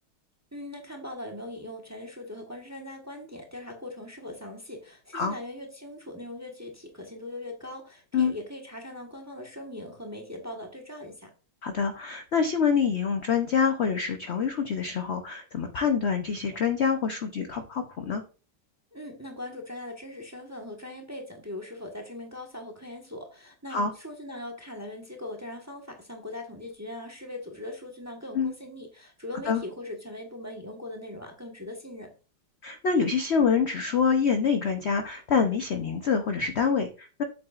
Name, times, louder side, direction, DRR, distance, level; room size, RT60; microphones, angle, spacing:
voice 1, 0.5-11.3 18.9-32.1, left 1 dB, 10° right, 2 dB, 1.1 m, -40 dB
voice 2, 11.6-18.2 23.7-23.9 28.3-28.5 29.5-29.6 32.6-37.2, left 6 dB, 60° left, 6 dB, 0.7 m, -26 dB
7.8 x 7.7 x 2.5 m, 0.34 s
omnidirectional pair, 2.0 m